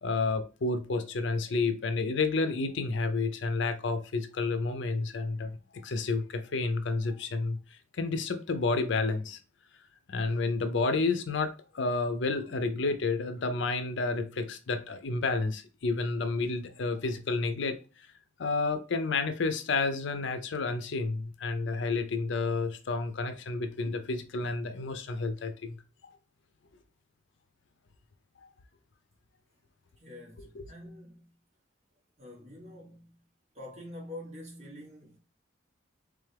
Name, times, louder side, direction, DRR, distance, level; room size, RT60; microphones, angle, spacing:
voice 1, 0.0-9.4 10.1-17.8 18.4-25.8 26.0-26.1 30.5-30.7, left 3 dB, 65° left, 0.5 m, -30 dB
voice 2, 30.0-31.3 32.2-33.2 33.5-35.2, left 1 dB, 35° right, 1.5 m, -46 dB
3.7 x 3.4 x 3.3 m
head